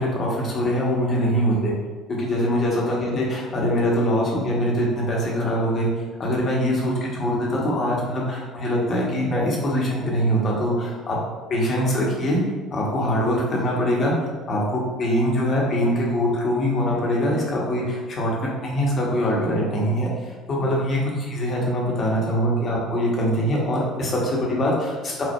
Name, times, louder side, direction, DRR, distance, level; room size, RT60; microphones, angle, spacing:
voice 1, 0.0-1.7 2.2-5.9 6.2-11.2 11.5-12.4 12.7-14.1 14.5-18.3 18.6-25.2, equal, 40° left, -3 dB, 0.8 m, -23 dB
4.2 x 2.1 x 2.2 m, 1.4 s
figure-of-eight pair, 55°, 0 cm